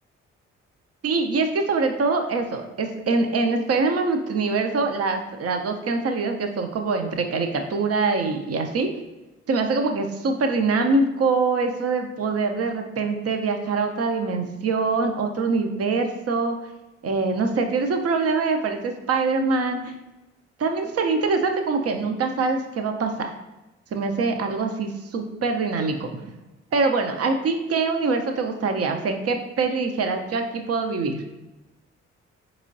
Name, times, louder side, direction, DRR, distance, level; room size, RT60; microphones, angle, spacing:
voice 1, 1.0-8.9 9.5-16.6 17.0-20.0 20.6-23.3 23.9-26.1 26.7-31.2, right 4 dB, 50° right, 5 dB, 0.6 m, -24 dB
4.4 x 3.1 x 2.6 m, 1.0 s
hypercardioid pair, 45°, 31 cm